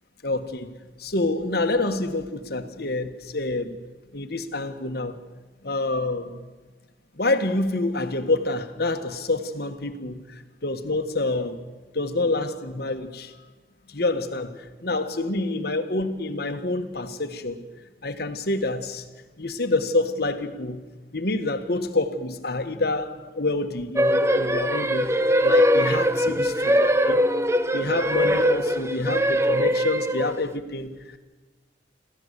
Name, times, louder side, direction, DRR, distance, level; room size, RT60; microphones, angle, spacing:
voice 1, 0.2-3.8 4.1-5.2 5.6-6.4 7.2-11.6 11.9-13.3 13.9-17.6 18.0-19.1 19.4-20.8 21.1-25.1 25.4-27.2 27.7-31.2, left 2 dB, 55° left, 8 dB, 1.6 m, -27 dB
sound 1, 24.0-30.5, equal, 15° right, 0.7 m, -21 dB
27.0 x 15.0 x 8.3 m, 1.3 s
head